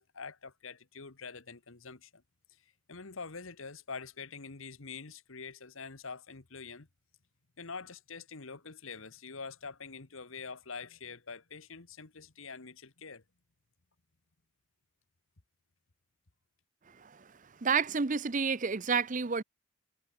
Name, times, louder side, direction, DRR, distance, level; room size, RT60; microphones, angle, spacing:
voice 1, 0.0-2.2 2.9-6.9 7.6-13.2, left 4 dB, 75° left, 1.5 m, -45 dB
voice 2, 17.0-17.3 17.6-19.4, right 5 dB, 35° right, 0.6 m, -30 dB
head